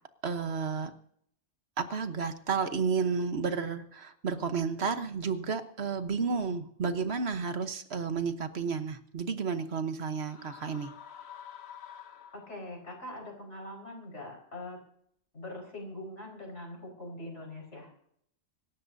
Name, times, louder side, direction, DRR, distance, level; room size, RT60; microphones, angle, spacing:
voice 1, 0.2-0.9 1.8-10.9, right 5 dB, 65° right, 9 dB, 1.3 m, -32 dB
sound 1, 10.2-12.9, left 9 dB, 65° left, 1.2 m, -48 dB
voice 2, 12.3-14.8 15.3-17.9, left 1 dB, 80° left, 1 dB, 5.4 m, -43 dB
26.0 x 12.5 x 2.7 m, 0.68 s
omnidirectional pair, 1.2 m